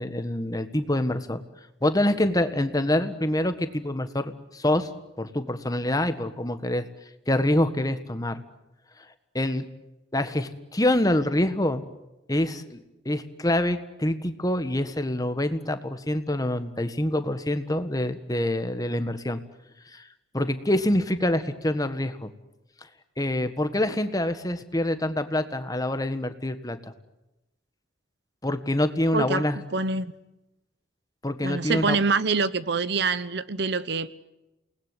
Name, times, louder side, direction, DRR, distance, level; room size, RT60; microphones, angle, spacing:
voice 1, 0.0-1.4 1.8-4.9 5.2-6.9 7.3-8.4 9.3-9.6 10.1-11.8 12.3-19.4 19.9-20.1 20.3-22.3 23.2-26.9 28.4-29.6 31.2-32.0, left 1 dB, 20° left, 1.5 m, -26 dB
voice 2, 29.1-30.1 31.4-34.1, right 4 dB, 65° right, 1.0 m, -25 dB
28.5 x 20.0 x 9.7 m
head